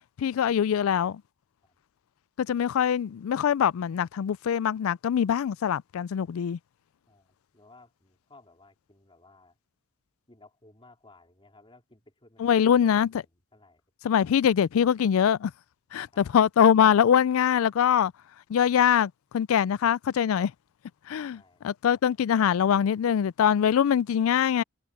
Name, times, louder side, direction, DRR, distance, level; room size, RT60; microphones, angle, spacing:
voice 1, 0.2-1.2 2.4-6.6 12.4-13.1 14.0-15.5 15.9-18.1 18.5-20.5 21.1-24.6, left 8 dB, 75° left, 0.3 m, -23 dB
voice 2, 7.1-9.6 10.3-13.8 16.1-16.4 21.3-21.7, left 2 dB, 25° left, 3.5 m, -57 dB
head